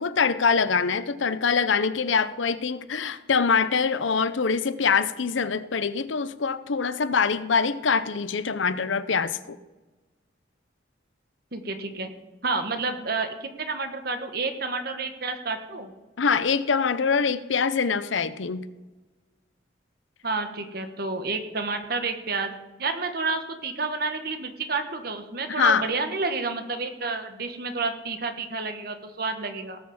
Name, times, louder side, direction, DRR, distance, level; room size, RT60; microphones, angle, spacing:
voice 1, 0.0-9.6 16.2-18.6 25.5-25.9, left 5 dB, 80° left, 14 dB, 0.7 m, -24 dB
voice 2, 11.5-12.1 12.4-15.9 20.2-22.5 22.8-29.8, right 3 dB, 55° right, 7 dB, 1.4 m, -30 dB
18.5 x 6.3 x 7.2 m, 1.2 s
head